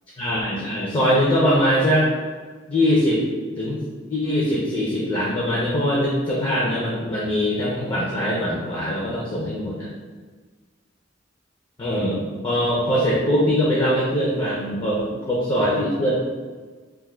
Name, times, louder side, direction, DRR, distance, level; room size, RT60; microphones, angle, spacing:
voice 1, 0.2-2.1 2.7-3.3 3.6-9.9 11.8-16.1, equal, 25° left, -6 dB, 0.4 m, -22 dB
2.3 x 2.0 x 3.1 m, 1.4 s
head